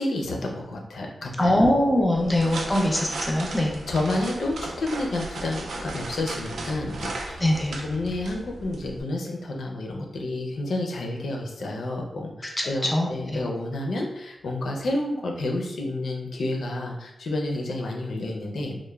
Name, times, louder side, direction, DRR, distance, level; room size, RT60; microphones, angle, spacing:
voice 1, 0.0-1.6 3.9-18.8, left 2 dB, 80° left, 1 dB, 0.4 m, -30 dB
voice 2, 1.4-3.7 7.4-7.7 12.6-13.4, left 1 dB, 10° left, 0 dB, 0.4 m, -22 dB
sound 1, 2.1-9.0, right 2 dB, 85° right, 0.3 m, -36 dB
3.0 x 2.0 x 2.2 m, 0.91 s
wide cardioid pair, 175°, 0 cm